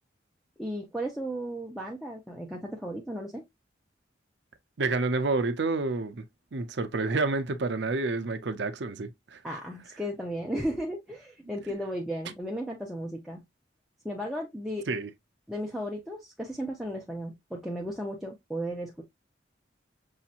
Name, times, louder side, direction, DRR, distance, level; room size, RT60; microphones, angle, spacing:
voice 1, 0.6-3.4 9.4-13.4 14.0-14.9 15.5-19.0, equal, ahead, 0.7 m, -35 dB
voice 2, 4.8-6.2 6.5-9.4 14.9-15.1, right 3 dB, 65° right, 0.6 m, -29 dB
6.3 x 2.9 x 2.4 m
head